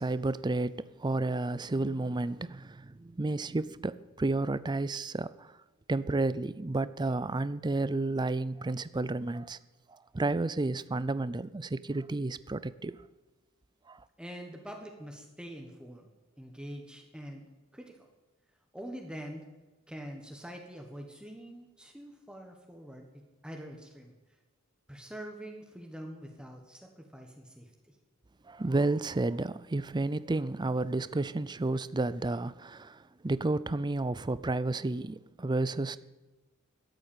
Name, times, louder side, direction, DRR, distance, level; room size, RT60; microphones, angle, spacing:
voice 1, 0.0-5.5 5.9-9.6 10.1-13.0 13.9-14.0 28.5-36.0, right 2 dB, 20° right, 0.5 m, -31 dB
voice 2, 14.2-16.1 16.4-17.5 17.7-18.1 18.7-19.5 19.9-24.1 24.9-27.9, equal, 5° right, 1.4 m, -45 dB
13.0 x 8.3 x 9.0 m
head